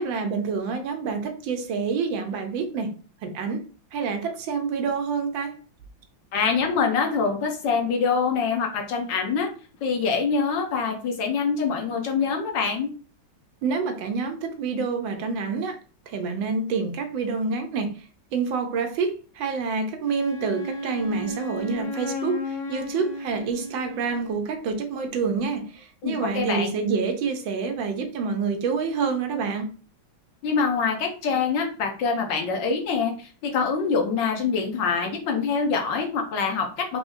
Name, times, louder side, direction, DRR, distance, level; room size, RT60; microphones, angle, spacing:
voice 1, 0.0-2.9 3.2-3.7 3.9-5.6 13.6-15.8 16.1-29.7, right 5 dB, 75° right, 1.4 m, -27 dB
voice 2, 6.3-9.5 9.8-12.9 26.0-26.8 30.4-37.0, left 5 dB, 70° left, 1.5 m, -25 dB
Wind instrument woodwind instrument, 20.0-24.4, left 1 dB, 40° left, 0.9 m, -33 dB
4.9 x 3.5 x 2.6 m
omnidirectional pair, 2.2 m